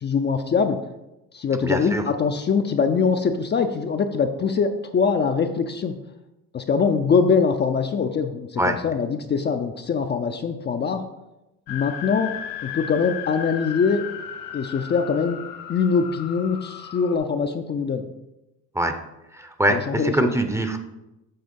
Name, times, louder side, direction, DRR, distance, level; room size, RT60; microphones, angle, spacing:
voice 1, 0.0-0.8 1.3-6.0 6.5-11.0 11.7-12.3 12.6-14.0 14.5-15.4 15.7-18.0 19.7-20.3, left 5 dB, 30° left, 6 dB, 0.5 m, -23 dB
voice 2, 1.6-2.0 8.6-8.8 18.8-19.0 19.4-20.8, right 1 dB, 10° right, 7 dB, 0.7 m, -23 dB
sound 1, 11.7-17.2, left 9 dB, 80° left, 0.8 m, -35 dB
7.9 x 3.5 x 5.2 m, 0.96 s
cardioid pair, 90°, 33 cm